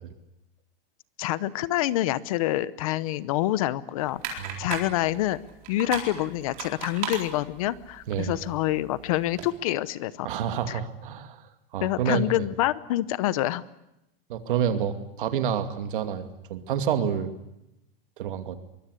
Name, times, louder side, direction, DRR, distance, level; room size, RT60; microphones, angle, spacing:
voice 1, 1.2-5.4 5.7-10.3 10.7-10.8 11.8-13.6, left 15 dB, 35° left, 17 dB, 0.8 m, -27 dB
sound 1, 4.0-9.5, right 8 dB, 30° right, 4.1 m, -38 dB
voice 2, 4.4-4.7 8.1-8.4 10.2-11.4 11.7-12.5 14.3-17.3 18.2-18.6, right 8 dB, 60° right, 7 dB, 2.5 m, -28 dB
23.5 x 22.0 x 8.4 m, 0.88 s
supercardioid pair, 180°, 29 cm